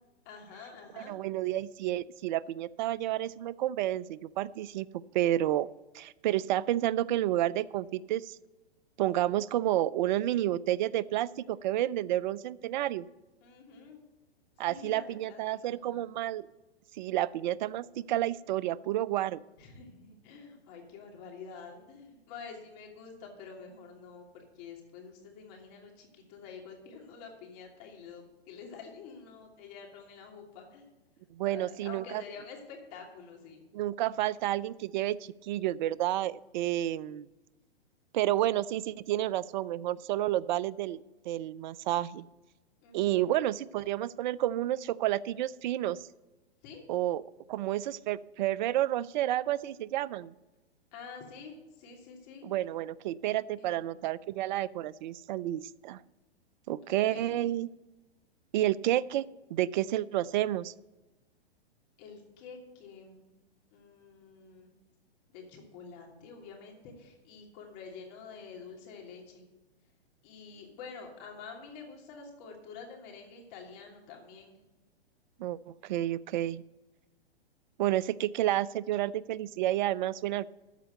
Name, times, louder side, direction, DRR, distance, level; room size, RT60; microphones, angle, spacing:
voice 1, 0.2-1.1 13.4-14.0 14.7-15.4 15.7-16.1 19.6-30.9 31.4-33.6 42.8-43.2 46.6-46.8 50.9-52.4 53.6-54.1 57.1-57.4 62.0-63.4 63.7-64.7 65.3-69.4 70.2-74.6, left 5 dB, 45° left, 1 dB, 3.0 m, -48 dB
voice 2, 1.0-4.9 5.1-5.7 5.9-8.4 9.0-13.1 14.6-16.5 17.0-19.4 31.3-32.2 33.7-37.3 38.1-41.0 41.3-42.3 42.9-46.0 46.9-47.2 47.5-50.3 52.4-56.0 56.7-57.7 58.5-59.2 59.5-60.7 75.4-76.6 77.8-80.5, right 13 dB, 50° right, 20 dB, 0.4 m, -30 dB
13.5 x 4.5 x 7.8 m, 1.1 s
hypercardioid pair, 125°, 31 cm